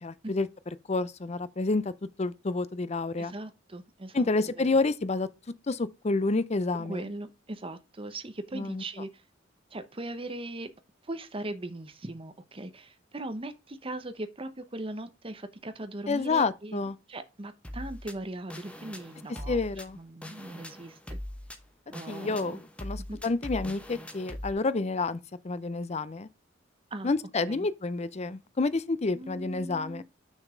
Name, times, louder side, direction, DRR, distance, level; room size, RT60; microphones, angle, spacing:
voice 1, 0.0-0.5 0.9-1.9 2.2-3.3 4.1-5.3 5.7-7.0 8.5-8.8 16.1-17.0 19.5-20.0 22.1-25.2 25.4-26.3 27.0-30.0, left 3 dB, 35° left, 0.5 m, -29 dB
voice 2, 3.2-4.3 4.6-4.7 6.8-9.2 9.7-10.7 11.0-16.8 17.1-19.6 19.9-21.2 21.9-22.6 23.1-23.2 26.9-27.1 27.5-27.7 29.1-30.0, right 2 dB, 30° right, 0.9 m, -39 dB
sound 1, 17.6-24.5, left 1 dB, 5° left, 1.0 m, -41 dB
6.5 x 5.2 x 5.0 m
head